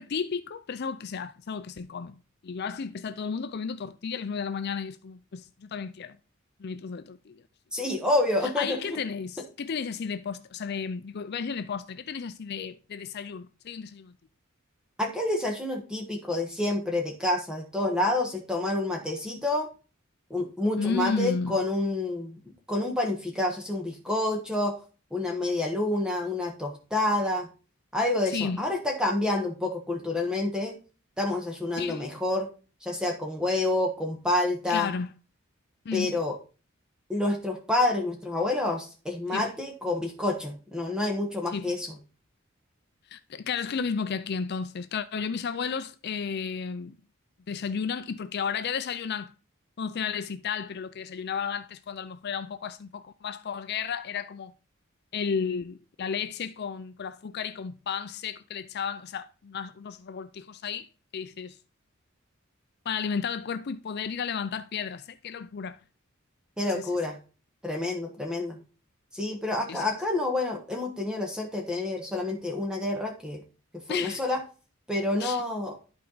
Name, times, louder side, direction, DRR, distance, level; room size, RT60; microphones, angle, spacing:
voice 1, 0.0-2.2 2.4-6.2 6.6-7.4 8.6-14.1 20.8-21.6 28.3-28.6 31.8-32.1 34.7-35.1 35.9-36.2 39.3-39.5 41.5-41.7 43.1-47.0 47.5-49.3 49.8-54.5 55.1-61.6 62.9-65.8 66.7-66.9 69.7-69.9 73.9-74.2 75.2-75.4, left 6 dB, 50° left, 0.5 m, -33 dB
voice 2, 7.7-9.0 15.0-19.7 20.3-22.4 22.7-24.8 25.1-27.5 27.9-30.8 31.2-32.5 32.8-34.9 35.9-36.4 37.1-42.0 66.6-67.2 67.6-68.6 69.1-73.4 73.9-74.4 74.9-75.8, left 2 dB, 5° right, 1.3 m, -28 dB
11.5 x 4.6 x 3.9 m
head